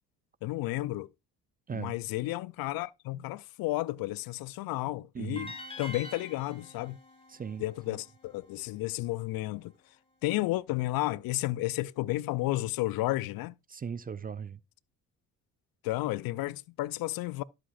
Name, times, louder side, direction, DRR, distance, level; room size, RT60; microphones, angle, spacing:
voice 1, 0.4-1.1 1.7-5.5 5.8-7.0 7.6-9.7 10.2-13.5 15.8-17.4, left 18 dB, 55° left, 0.5 m, -32 dB
voice 2, 5.1-5.5 7.3-8.0 13.7-14.6, right 6 dB, 20° right, 0.5 m, -38 dB
sound 1, 5.4-8.5, left 1 dB, 15° left, 2.3 m, -46 dB
12.5 x 7.7 x 2.4 m
hypercardioid pair, 55°, 42 cm